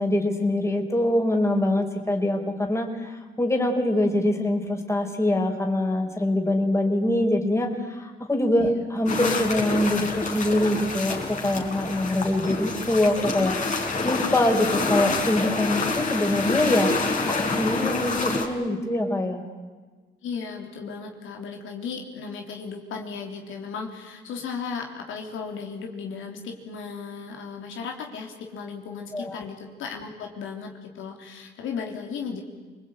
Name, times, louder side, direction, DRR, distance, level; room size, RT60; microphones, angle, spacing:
voice 1, 0.0-16.9 17.3-19.4 29.1-29.4, left 1 dB, 15° left, 3 dB, 4.5 m, -24 dB
sound 1, 9.1-18.5, left 3 dB, 40° left, 5.1 m, -27 dB
voice 2, 20.2-32.4, left 5 dB, 80° left, 2 dB, 3.7 m, -35 dB
26.5 x 20.5 x 9.1 m, 1.4 s
cardioid pair, 90°, 20 cm